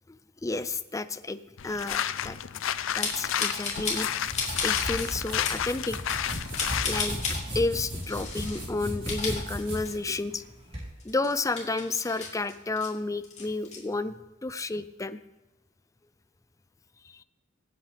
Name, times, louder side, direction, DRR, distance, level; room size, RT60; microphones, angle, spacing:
voice 1, 0.1-1.4 1.6-2.4 3.0-4.1 4.6-6.0 6.8-7.2 7.5-10.4 11.0-14.1 14.4-15.2 17.1-17.2, left 3 dB, 15° left, 12 dB, 0.5 m, -31 dB
sound 1, 1.6-7.1, left 10 dB, 70° left, 0.5 m, -31 dB
sound 2, 3.0-4.1 4.3-5.1 5.4-5.6 6.1-7.4 8.0-8.6 8.9-10.1 10.5-10.6 11.0-12.9 13.2-13.8, left 4 dB, 35° left, 2.9 m, -33 dB
sound 3, 3.7-10.9, equal, 30° right, 3.7 m, -37 dB
24.5 x 8.2 x 3.5 m, 1.1 s
head